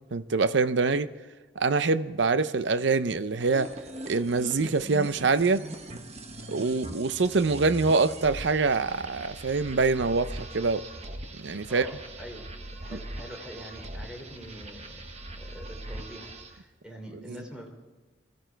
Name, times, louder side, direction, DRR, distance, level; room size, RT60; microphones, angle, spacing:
voice 1, 0.1-1.1 1.6-3.7 4.1-5.6 6.5-10.8 11.4-11.9, right 4 dB, 70° right, 0.6 m, -25 dB
sound 1, 3.4-16.6, right 1 dB, 35° right, 1.2 m, -41 dB
voice 2, 11.7-12.5 12.8-15.0 15.3-17.7, equal, 5° right, 3.0 m, -44 dB
21.0 x 14.5 x 4.5 m
head